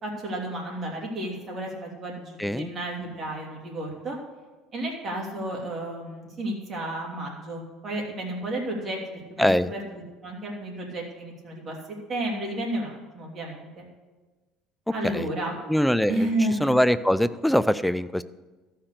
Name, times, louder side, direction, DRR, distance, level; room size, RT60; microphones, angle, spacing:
voice 1, 0.0-4.2 4.7-13.8 14.9-15.6 16.1-16.7, right 1 dB, 35° right, 0 dB, 2.9 m, -32 dB
voice 2, 2.4-2.7 9.4-9.7 15.0-15.3 15.7-16.3 16.6-18.2, equal, ahead, 14 dB, 0.4 m, -22 dB
14.0 x 5.9 x 6.6 m, 1.2 s
cardioid pair, 120°, 0 cm